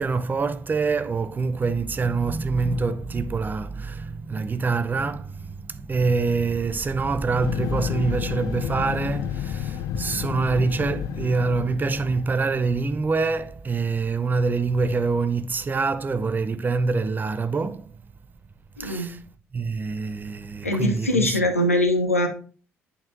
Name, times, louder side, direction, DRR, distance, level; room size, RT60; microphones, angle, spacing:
voice 1, 0.0-17.9 18.8-19.2 19.5-21.4, right 4 dB, 25° right, 0.5 m, -25 dB
sound 1, 7.4-12.6, left 12 dB, 50° left, 0.3 m, -31 dB
voice 2, 18.8-19.1 20.6-22.3, left 1 dB, 90° left, 0.7 m, -22 dB
8.7 x 6.3 x 2.5 m
figure-of-eight pair, 50°, 7 cm